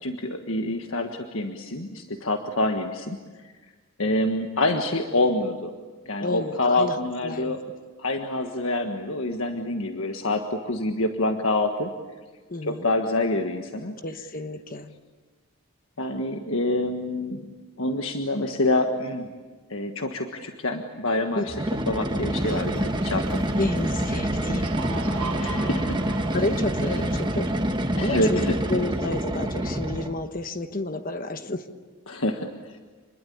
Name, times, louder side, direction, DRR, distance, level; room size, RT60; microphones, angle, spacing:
voice 1, 0.0-3.5 4.0-5.7 6.0-7.6 8.0-11.9 12.7-13.9 16.0-17.5 17.8-19.3 19.7-21.5 21.9-23.4 25.3-26.2 28.0-28.5 32.1-32.8, left 2 dB, 70° left, 4 dB, 1.6 m, -26 dB
voice 2, 6.2-7.0 7.2-7.6 12.5-12.9 14.0-14.9 21.3-21.5 22.4-22.8 23.6-24.8 26.3-27.5 28.0-28.4 28.7-31.7, left 2 dB, 40° left, 8 dB, 1.2 m, -30 dB
sound 1, 21.5-30.3, right 1 dB, 20° right, 1.3 m, -27 dB
sound 2, 22.4-27.6, right 4 dB, 90° right, 1.6 m, -38 dB
28.0 x 21.5 x 8.6 m, 1.4 s
head